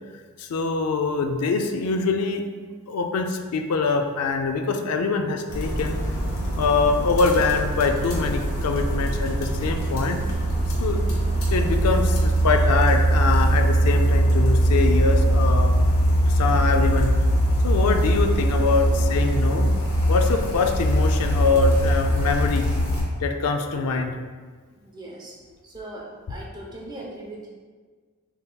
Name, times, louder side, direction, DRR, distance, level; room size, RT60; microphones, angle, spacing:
voice 1, 0.4-2.4 2.9-6.0 6.6-10.2 10.8-11.0 11.5-15.8 16.3-17.2 17.6-19.7 20.1-22.7 23.2-24.1, left 4 dB, 90° left, 5 dB, 0.4 m, -24 dB
sound 1, 5.5-23.0, right 1 dB, 65° left, 1.1 m, -21 dB
voice 2, 24.7-25.3 25.6-27.5, right 1 dB, 20° right, -2 dB, 0.6 m, -39 dB
6.7 x 2.9 x 2.2 m, 1.5 s
head